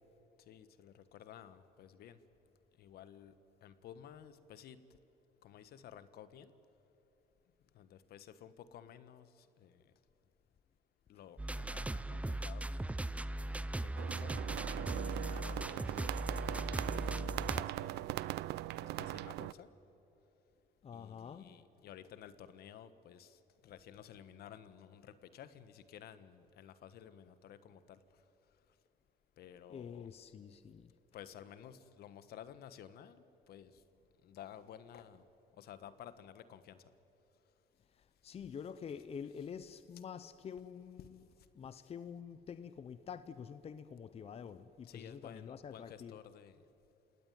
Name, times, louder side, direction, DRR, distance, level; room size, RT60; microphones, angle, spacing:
voice 1, 0.5-2.2 2.8-3.3 3.6-4.8 5.4-6.5 7.7-9.8 11.1-12.7 13.4-14.4 14.7-18.0 18.8-19.7 20.9-28.2 29.4-30.1 31.1-33.8 34.2-35.2 35.5-36.9 41.0-41.1 44.8-46.6, left 9 dB, 70° left, 13 dB, 1.3 m, -54 dB
sound 1, 11.4-17.6, right 1 dB, 10° right, 0.5 m, -39 dB
sound 2, 14.0-19.5, right 16 dB, 80° right, 0.6 m, -40 dB
voice 2, 20.8-21.5 29.7-30.9 38.2-41.2 41.5-46.2, left 7 dB, 35° left, 12 dB, 0.8 m, -47 dB
29.5 x 18.0 x 9.4 m, 3.0 s
cardioid pair, 110°, 17 cm